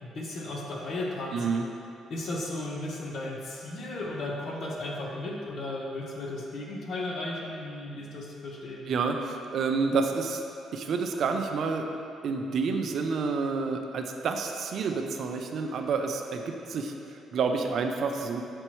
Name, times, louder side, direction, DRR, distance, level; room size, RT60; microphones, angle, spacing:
voice 1, 0.0-1.6 2.1-8.9, left 2 dB, 60° left, -2 dB, 1.0 m, -35 dB
voice 2, 1.3-1.6 8.9-10.4 10.7-11.9 12.2-18.4, right 4 dB, 65° right, 4 dB, 0.5 m, -29 dB
7.8 x 4.4 x 3.0 m, 2.6 s
cardioid pair, 105°, 0 cm